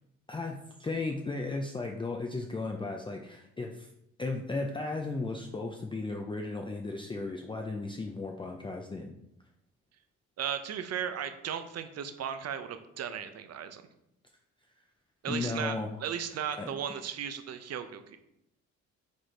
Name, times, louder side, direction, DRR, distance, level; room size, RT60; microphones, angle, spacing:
voice 1, 0.3-3.9 4.2-9.1 15.3-15.9 16.3-16.7, left 3 dB, 15° left, 2 dB, 0.5 m, -35 dB
voice 2, 10.4-13.8 15.2-18.2, right 8 dB, 55° right, 9 dB, 0.7 m, -36 dB
5.2 x 4.2 x 4.5 m, 0.80 s
cardioid pair, 90°, 30 cm